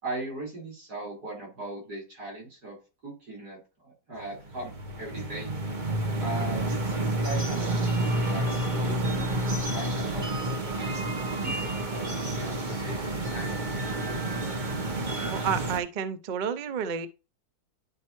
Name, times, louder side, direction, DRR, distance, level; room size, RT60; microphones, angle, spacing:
voice 1, 0.0-2.8 3.0-5.5 6.2-10.5 10.8-11.1 11.4-13.6, right 2 dB, 85° right, 5.1 m, -39 dB
sound 1, 4.2-15.8, right 1 dB, 35° right, 1.2 m, -29 dB
voice 2, 15.3-17.1, right 7 dB, 60° right, 0.5 m, -30 dB
11.0 x 4.3 x 3.1 m
omnidirectional pair, 1.7 m